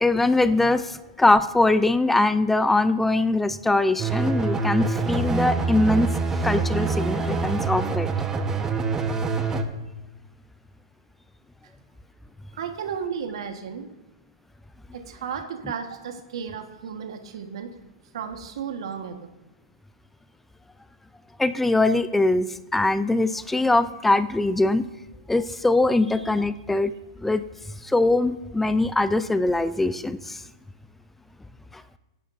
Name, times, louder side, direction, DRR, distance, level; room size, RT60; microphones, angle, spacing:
voice 1, 0.0-8.1 21.4-24.9 25.3-26.9 27.2-27.4 27.8-30.4 31.7-31.8, left 2 dB, 5° left, 13 dB, 0.4 m, -22 dB
sound 1, 4.0-9.6, right 4 dB, 15° right, 1.0 m, -25 dB
voice 2, 12.5-13.9 14.9-17.7 18.1-19.2, right 7 dB, 75° right, 5 dB, 1.3 m, -33 dB
18.5 x 10.5 x 2.6 m, 1.0 s
hypercardioid pair, 125°, 3 cm